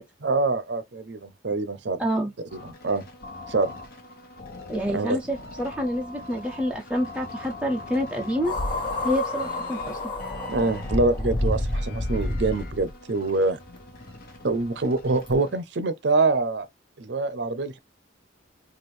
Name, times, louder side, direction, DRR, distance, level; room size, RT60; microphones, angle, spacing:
voice 1, 0.2-2.0 2.5-3.0 3.5-3.7 4.9-5.2 10.5-13.6 14.4-16.7 17.0-17.8, right 3 dB, 65° right, 0.6 m, -25 dB
voice 2, 2.0-2.3 4.7-8.5 9.0-10.0, equal, 5° right, 0.4 m, -27 dB
sound 1, 2.5-15.6, left 2 dB, 50° left, 1.0 m, -43 dB
sound 2, 8.4-12.9 13.8-13.9 15.3-15.4, left 1 dB, 25° left, 1.2 m, -29 dB
4.3 x 2.5 x 3.2 m
head